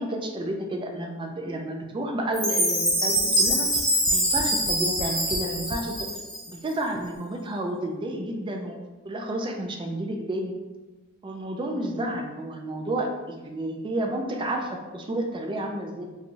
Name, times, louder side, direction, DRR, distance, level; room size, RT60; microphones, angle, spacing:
voice 1, 0.0-3.8 4.1-6.1 6.5-8.8 9.0-10.6 11.2-16.1, right 1 dB, 25° right, 3 dB, 0.3 m, -31 dB
Chime, 2.3-6.5, equal, 5° left, 0.8 m, -24 dB
Tap, 2.9-5.9 6.7-6.8 7.1-7.2, left 1 dB, 60° left, 0.3 m, -38 dB
3.0 x 2.3 x 2.5 m, 1.2 s
head